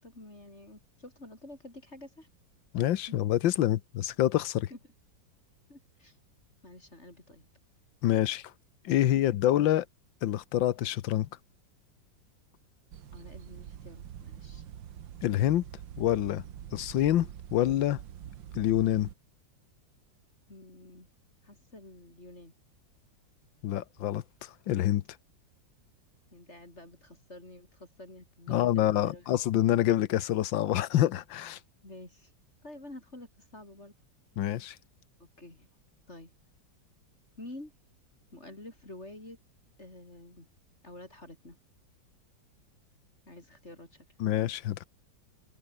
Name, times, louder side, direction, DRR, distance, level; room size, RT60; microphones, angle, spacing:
voice 1, 0.0-2.3 3.1-3.2 4.7-4.8 5.7-6.2 6.6-7.5 9.1-9.2 13.1-14.6 20.5-21.1 21.4-22.5 26.3-29.3 31.8-32.3 32.6-33.9 35.2-35.7 36.1-36.3 37.4-37.7 38.3-39.4 39.8-40.5 40.8-41.6 43.3-44.1, left 1 dB, 35° left, 5.4 m, -49 dB
voice 2, 2.7-4.7 8.0-8.5 8.8-9.8 10.2-11.3 15.2-15.6 16.0-16.4 16.7-18.0 18.5-19.1 23.6-25.0 28.5-31.6 34.4-34.8 44.2-44.8, left 13 dB, 90° left, 1.6 m, -27 dB
sound 1, 12.9-19.1, right 10 dB, 85° right, 1.9 m, -45 dB
omnidirectional pair, 2.0 m